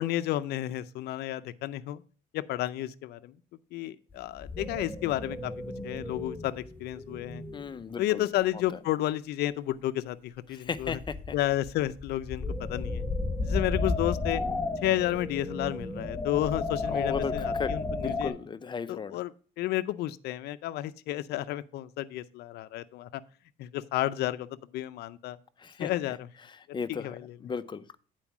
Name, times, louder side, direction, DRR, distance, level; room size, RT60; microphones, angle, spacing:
voice 1, 0.0-2.0 2.3-3.3 3.7-7.4 8.0-11.0 11.3-13.1 13.4-14.4 14.8-18.3 18.9-19.3 19.6-23.2 23.6-24.5 24.7-25.4 25.8-26.3 26.7-27.4, left 14 dB, 75° left, 15 dB, 0.5 m, -31 dB
sound 1, 4.1-4.2 4.4-7.8 8.4-8.7 10.8-18.3, left 3 dB, 10° left, 1.5 m, -33 dB
voice 2, 7.5-8.2 8.7-8.8 10.5-11.3 16.9-19.2 25.6-25.9 26.5-27.2 27.4-27.9, left 6 dB, 25° left, 13 dB, 0.6 m, -36 dB
8.8 x 4.5 x 5.9 m, 0.41 s
cardioid pair, 110°, 17 cm